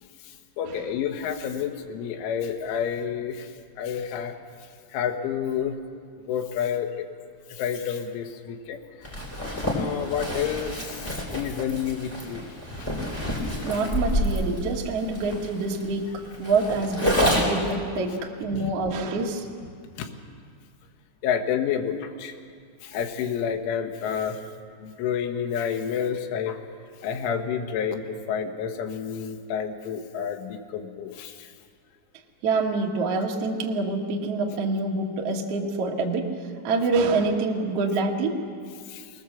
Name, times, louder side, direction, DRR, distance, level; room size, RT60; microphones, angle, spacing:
voice 1, 0.6-3.5 3.8-4.4 4.9-5.8 6.3-7.1 7.5-8.8 9.7-12.5 12.8-12.9 13.4-13.5 18.5-18.7 20.0-20.1 21.2-22.3 22.8-24.4 24.8-26.6 27.0-31.5 38.9-39.1, left 8 dB, 75° left, 4 dB, 3.6 m, -29 dB
Zipper (clothing), 9.0-17.7, equal, 5° left, 2.5 m, -28 dB
voice 2, 13.6-16.1 16.4-18.1 18.4-19.4 32.4-36.3 36.6-38.4, right 3 dB, 70° right, 0 dB, 1.5 m, -26 dB
22.0 x 19.5 x 7.4 m, 2.2 s
omnidirectional pair, 6.0 m